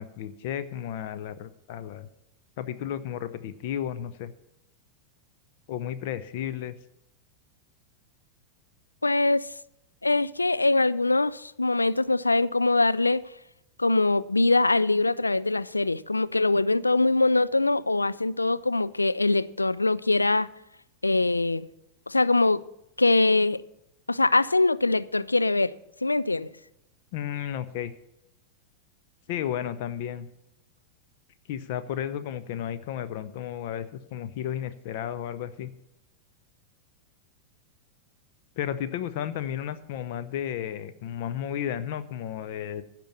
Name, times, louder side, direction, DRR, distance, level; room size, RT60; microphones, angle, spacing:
voice 1, 0.0-2.1 2.6-4.3 5.7-6.8 27.1-27.9 29.3-30.3 31.5-35.7 38.6-42.8, left 10 dB, 50° left, 0.7 m, -33 dB
voice 2, 9.0-9.5 10.0-13.3 13.8-20.5 21.0-21.7 22.1-22.6 23.0-23.6 24.1-25.7 26.0-26.5, left 2 dB, 80° left, 0.4 m, -23 dB
15.5 x 6.1 x 6.9 m
figure-of-eight pair, 90°, 0 cm